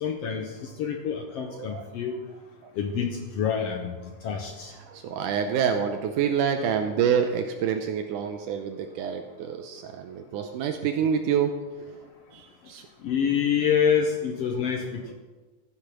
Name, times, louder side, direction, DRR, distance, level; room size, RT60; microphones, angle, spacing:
voice 1, 0.0-2.2 2.8-4.0 4.2-4.7 13.0-15.1, left 7 dB, 80° left, 4 dB, 1.4 m, -27 dB
voice 2, 1.5-1.8 2.6-2.7 4.9-11.6 12.3-12.8, right 7 dB, 80° right, 6 dB, 2.1 m, -27 dB
14.0 x 6.6 x 6.0 m, 1.3 s
omnidirectional pair, 3.8 m